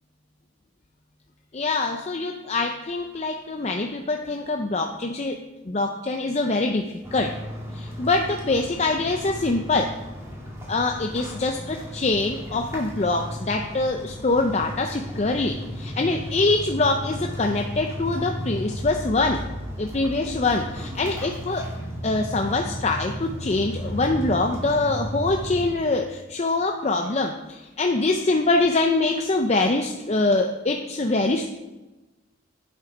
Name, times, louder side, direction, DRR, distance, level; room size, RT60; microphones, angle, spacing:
voice 1, 1.5-5.4 5.7-7.3 7.7-9.9 10.7-19.4 19.8-21.7 22.0-31.4, left 2 dB, 35° left, 3 dB, 0.5 m, -24 dB
sound 1, 7.0-25.8, equal, 15° right, 2.2 m, -34 dB
8.7 x 7.7 x 5.1 m, 1.1 s
head